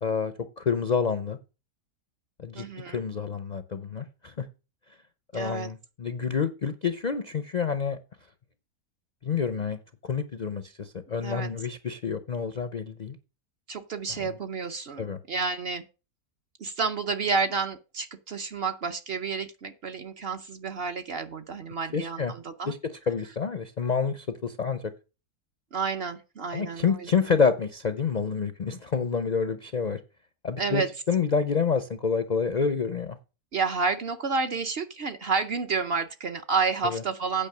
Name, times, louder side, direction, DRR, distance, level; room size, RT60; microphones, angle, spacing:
voice 1, 0.0-1.4 2.4-4.5 5.3-8.0 9.2-13.2 14.2-14.3 15.0-15.2 21.9-22.3 22.7-22.8 23.1-24.8 26.5-30.0 30.4-33.2 36.8-37.0, left 5 dB, 55° left, 10 dB, 0.5 m, -28 dB
voice 2, 2.5-3.0 5.3-5.7 11.2-11.5 13.7-15.8 16.6-22.7 25.7-27.1 30.6-30.9 33.5-37.5, right 5 dB, 50° right, 8 dB, 0.8 m, -30 dB
8.8 x 5.4 x 6.5 m, 0.31 s
omnidirectional pair, 1.6 m